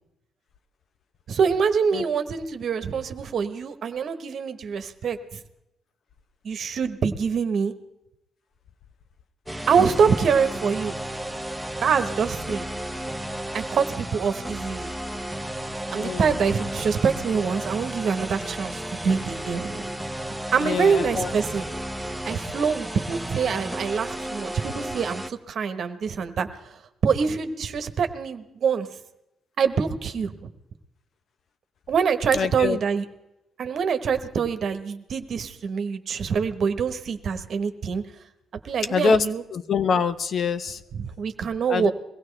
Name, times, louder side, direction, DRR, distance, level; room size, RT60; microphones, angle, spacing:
voice 1, 1.3-5.2 6.4-7.7 9.7-10.9 11.8-12.7 13.5-14.9 15.9-19.9 20.5-21.6 22.3-26.5 27.0-28.9 29.6-30.3 31.9-33.0 33.6-38.0 38.6-39.4 41.0-41.9, right 6 dB, 60° right, 8 dB, 1.1 m, -25 dB
sound 1, 9.5-25.3, right 1 dB, 5° right, 0.7 m, -33 dB
voice 2, 16.0-16.4 20.6-21.3 32.3-32.8 38.9-39.3 39.5-40.8 41.7-41.9, left 5 dB, 55° left, 11 dB, 0.7 m, -24 dB
22.5 x 16.5 x 3.3 m, 0.88 s
cardioid pair, 90°, 0 cm